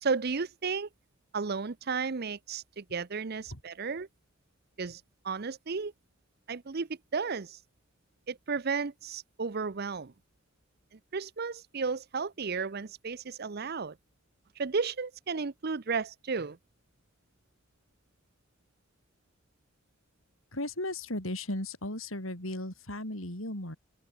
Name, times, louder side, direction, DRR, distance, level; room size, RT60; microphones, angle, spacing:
voice 1, 0.0-0.9 1.3-4.1 4.8-5.9 6.5-7.6 8.3-10.1 10.9-14.0 14.6-16.6, right 5 dB, 50° right, 0.7 m, -33 dB
voice 2, 20.5-23.8, left 1 dB, 85° left, 7.9 m, -36 dB
open air
head